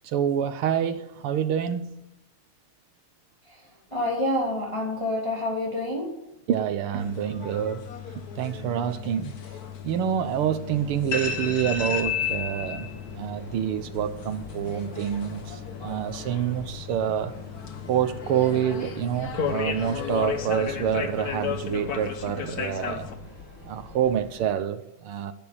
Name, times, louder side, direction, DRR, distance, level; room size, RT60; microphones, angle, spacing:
voice 1, 0.0-2.0 6.5-7.8 8.4-9.3 9.8-17.3 17.9-23.1 23.6-25.3, right 9 dB, 80° right, 1.8 m, -27 dB
voice 2, 3.9-6.1, left 1 dB, 15° left, 2.8 m, -27 dB
sound 1, 7.0-23.2, left 7 dB, 50° left, 1.6 m, -34 dB
Train, 10.6-24.5, left 3 dB, 70° left, 6.9 m, -45 dB
12.0 x 10.5 x 8.6 m
omnidirectional pair, 2.4 m